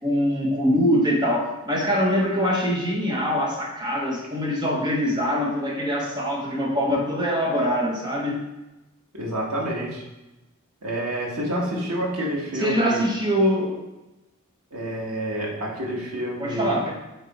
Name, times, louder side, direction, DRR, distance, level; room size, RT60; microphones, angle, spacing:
voice 1, 0.0-8.4 12.6-13.8 16.4-16.9, equal, 20° right, -1 dB, 1.1 m, -23 dB
voice 2, 9.1-10.0 10.8-13.0 14.7-16.8, equal, 90° right, -2 dB, 1.6 m, -28 dB
8.5 x 3.5 x 4.2 m, 1.0 s
head